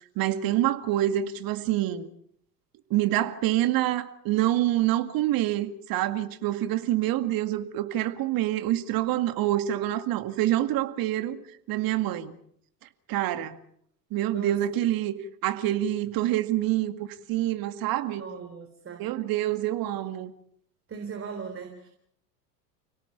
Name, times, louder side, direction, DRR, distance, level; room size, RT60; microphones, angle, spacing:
voice 1, 0.2-2.1 2.9-11.4 11.7-12.3 13.1-13.6 14.1-15.1 15.4-18.3 19.0-20.3, right 13 dB, 45° right, 2.1 m, -26 dB
voice 2, 14.3-14.7 18.2-19.1 20.9-21.9, right 6 dB, 25° right, 3.7 m, -37 dB
30.0 x 18.0 x 7.2 m
figure-of-eight pair, 75°, 50 cm